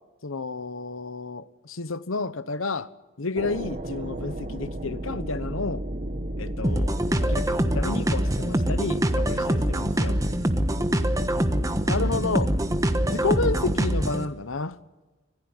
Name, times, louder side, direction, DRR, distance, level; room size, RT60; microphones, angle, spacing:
voice 1, 0.2-2.9 3.2-5.8 6.4-6.9 7.2-10.4 11.9-12.5 13.0-14.8, left 3 dB, 80° left, 1.1 m, -31 dB
sound 1, 3.4-13.8, right 1 dB, 35° right, 1.2 m, -33 dB
sound 2, 6.6-14.2, right 1 dB, 15° right, 1.2 m, -24 dB
26.0 x 17.0 x 9.9 m
head